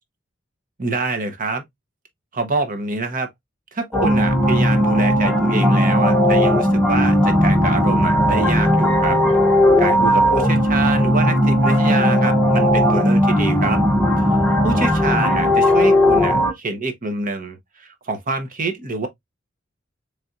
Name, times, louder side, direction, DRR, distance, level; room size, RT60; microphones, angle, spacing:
voice 1, 0.8-1.6 2.3-3.3 3.7-9.2 9.8-13.8 14.3-19.1, right 3 dB, 45° right, 0.9 m, -26 dB
sound 1, 3.9-16.5, equal, 5° left, 0.8 m, -17 dB
4.2 x 3.3 x 2.4 m
head